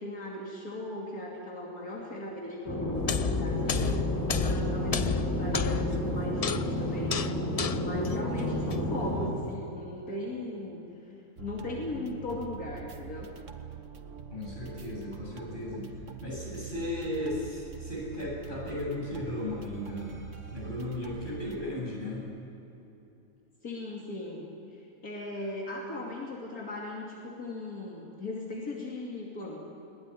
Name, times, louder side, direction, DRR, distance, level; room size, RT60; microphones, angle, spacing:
voice 1, 0.0-4.1 4.4-7.2 7.7-10.8 11.4-13.3 23.6-24.5 25.0-29.6, left 2 dB, 80° left, -2 dB, 3.1 m, -38 dB
sound 1, 2.7-9.3, equal, 10° left, 4.5 m, -31 dB
sound 2, 2.9-9.2, left 6 dB, 65° left, 0.3 m, -32 dB
sound 3, 11.4-21.7, right 6 dB, 60° right, 1.7 m, -44 dB
voice 2, 14.3-15.9 16.2-20.2 20.5-22.2, left 1 dB, 35° left, -4 dB, 7.9 m, -35 dB
21.5 x 19.0 x 10.0 m, 3.0 s
omnidirectional pair, 1.5 m